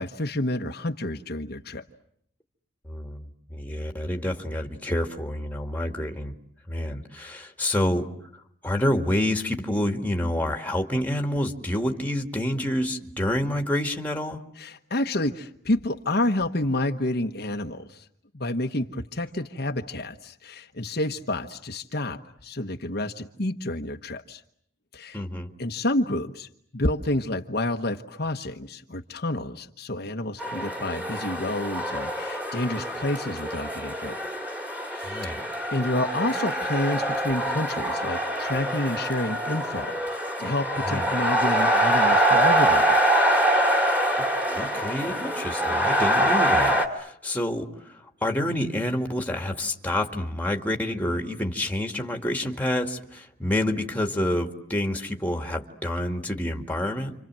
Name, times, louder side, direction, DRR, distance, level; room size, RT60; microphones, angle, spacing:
voice 1, 0.0-1.8 14.6-18.0 18.3-24.4 24.9-25.2 25.6-26.5 26.7-34.2 34.9-35.3 35.7-43.0, left 1 dB, 50° left, 4 dB, 1.2 m, -29 dB
voice 2, 2.8-6.3 6.7-14.4 25.1-25.5 35.0-35.4 40.8-41.1 44.2-57.2, left 1 dB, 10° left, 4 dB, 2.1 m, -28 dB
sound 1, 30.4-46.9, right 1 dB, 5° right, 2.7 m, -24 dB
29.5 x 26.0 x 7.6 m, 0.68 s
head